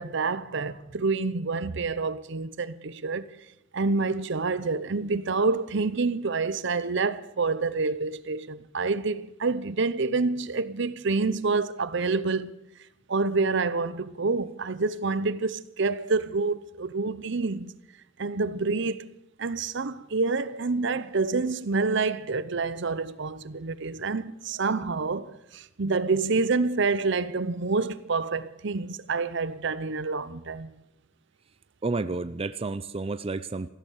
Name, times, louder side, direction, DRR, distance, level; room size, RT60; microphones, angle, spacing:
voice 1, 0.0-3.2 3.7-12.5 13.1-17.7 18.2-30.7, right 4 dB, 65° right, 0.8 m, -27 dB
voice 2, 31.8-33.7, right 3 dB, 30° right, 0.5 m, -30 dB
14.5 x 13.5 x 6.5 m
head